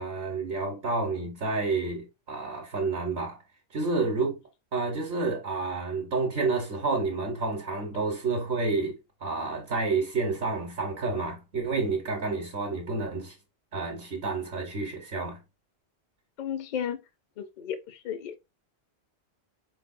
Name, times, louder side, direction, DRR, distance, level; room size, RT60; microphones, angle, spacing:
voice 1, 0.0-3.4 3.7-4.4 4.7-13.4 13.7-15.4, right 3 dB, 70° right, 1.1 m, -29 dB
voice 2, 16.4-17.0 17.4-18.4, left 8 dB, 55° left, 0.5 m, -34 dB
4.0 x 3.2 x 2.4 m
omnidirectional pair, 1.1 m